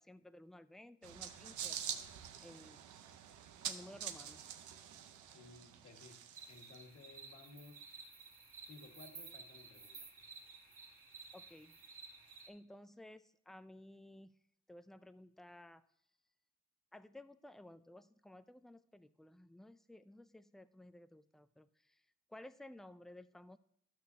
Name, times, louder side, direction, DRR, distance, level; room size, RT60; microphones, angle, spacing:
voice 1, 0.0-1.8 2.4-2.9 3.6-4.5 11.3-11.8 12.5-14.3 14.7-15.8 16.9-22.0 22.3-23.6, left 1 dB, ahead, 13 dB, 0.3 m, -56 dB
sound 1, 1.0-6.7, right 9 dB, 75° right, 0.7 m, -46 dB
voice 2, 5.3-6.2 6.5-7.8 8.6-10.1, left 3 dB, 55° left, 3 dB, 1.6 m, -57 dB
sound 2, 6.3-12.5, right 4 dB, 45° right, 1.8 m, -54 dB
12.5 x 6.3 x 2.7 m, 0.69 s
cardioid pair, 90°, 30 cm